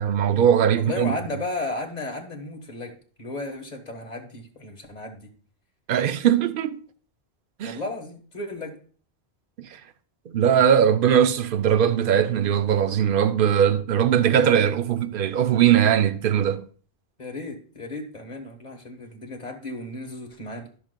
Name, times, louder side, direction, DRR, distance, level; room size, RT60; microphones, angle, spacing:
voice 1, 0.0-1.1 5.9-6.8 7.6-7.8 9.6-9.7 10.3-16.6, right 9 dB, 60° right, 0.7 m, -20 dB
voice 2, 0.8-5.3 7.6-8.8 17.2-20.7, left 2 dB, 40° left, 1.4 m, -34 dB
13.0 x 6.4 x 2.2 m
omnidirectional pair, 1.1 m